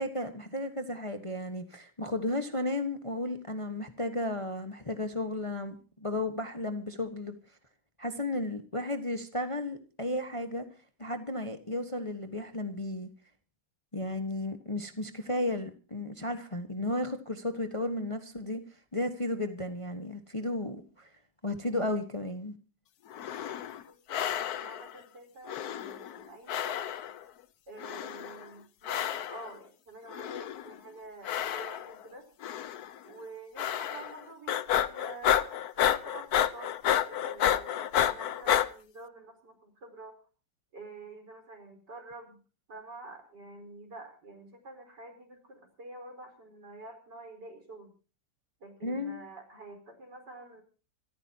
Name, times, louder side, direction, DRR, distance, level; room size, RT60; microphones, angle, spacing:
voice 1, 0.0-7.4 8.0-10.7 11.0-13.1 13.9-18.6 18.9-21.1 21.4-22.6 48.8-49.2, left 1 dB, 20° left, 8 dB, 1.2 m, -34 dB
sound 1, 23.1-23.8 24.1-24.9 25.5-26.2 26.5-27.2 27.8-28.4 28.8-29.5 30.1-30.7 31.2-32.0 32.4-32.9 33.6-34.2 34.5-38.7, left 10 dB, 60° left, 1.3 m, -30 dB
voice 2, 23.1-23.5 23.9-24.3 24.6-26.8 27.7-32.3 33.0-36.7 37.0-40.2 40.7-42.4 42.7-47.9 48.6-50.6, right 2 dB, 70° right, 5 dB, 5.2 m, -48 dB
26.5 x 14.0 x 2.8 m, 0.36 s
omnidirectional pair, 1.9 m